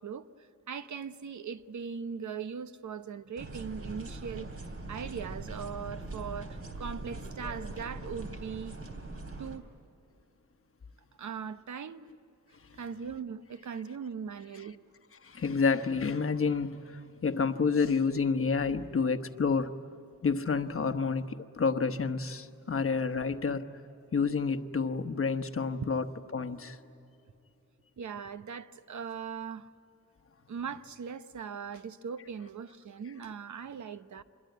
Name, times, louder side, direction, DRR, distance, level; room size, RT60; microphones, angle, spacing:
voice 1, 0.0-4.5 4.9-8.8 9.4-9.6 11.2-12.1 12.8-14.8 28.0-29.7 30.5-34.2, right 6 dB, 75° right, 0.9 m, -40 dB
sound 1, 3.4-9.6, right 2 dB, 50° right, 3.0 m, -41 dB
voice 2, 15.2-19.7 20.2-23.7 24.1-26.1 26.3-26.8, left 5 dB, 45° left, 1.1 m, -29 dB
27.0 x 22.5 x 9.3 m
wide cardioid pair, 140°, 30 cm